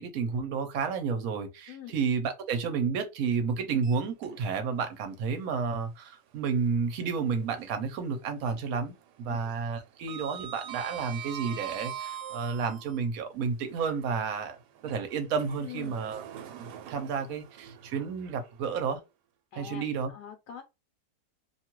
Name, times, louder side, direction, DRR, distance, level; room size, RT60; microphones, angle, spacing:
voice 1, 0.0-14.6 14.8-16.2 16.5-19.0 19.6-20.1, right 5 dB, 65° right, 1.0 m, -31 dB
voice 2, 1.7-2.0 9.3-9.5 15.6-16.0 19.5-20.6, left 10 dB, 75° left, 1.2 m, -44 dB
Sliding door, 3.7-4.7 5.1-5.2 6.9-8.0 8.2-8.6 8.9-13.0 13.6-18.8, right 9 dB, 85° right, 1.2 m, -43 dB
2.8 x 2.3 x 2.9 m
omnidirectional pair, 1.7 m